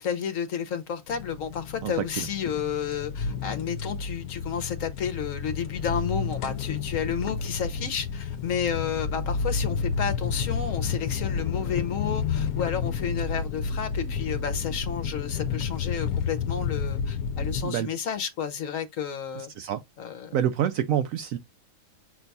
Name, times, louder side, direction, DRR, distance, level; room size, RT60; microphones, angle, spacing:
voice 1, 0.0-19.5 20.0-20.4, left 7 dB, 70° left, 1.1 m, -31 dB
sound 1, 1.1-17.6, left 6 dB, 90° left, 1.1 m, -30 dB
voice 2, 1.8-2.3 17.6-17.9 19.6-19.8 20.3-21.4, right 10 dB, 75° right, 0.9 m, -27 dB
6.0 x 2.2 x 4.0 m
omnidirectional pair, 1.5 m